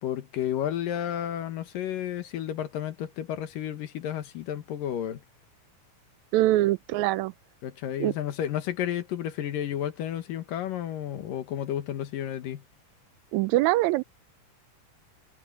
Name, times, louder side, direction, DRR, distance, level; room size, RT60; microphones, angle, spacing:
voice 1, 0.0-5.2 7.6-12.6, left 10 dB, 85° left, 3.1 m, -32 dB
voice 2, 6.3-7.3 8.0-8.1 13.3-14.0, right 16 dB, 80° right, 1.7 m, -23 dB
omnidirectional pair, 3.8 m